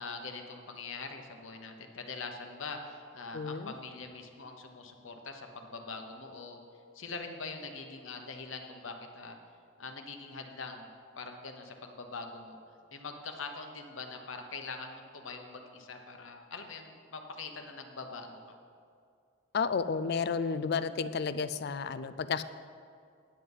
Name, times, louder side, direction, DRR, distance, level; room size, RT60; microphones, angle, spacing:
voice 1, 0.0-6.6 6.9-9.4 9.8-10.9 11.2-12.6 12.9-18.6, left 4 dB, 70° left, 4 dB, 1.0 m, -43 dB
voice 2, 3.3-3.7 19.5-22.4, left 5 dB, 50° left, 13 dB, 0.4 m, -32 dB
9.8 x 7.9 x 5.5 m, 2.3 s
head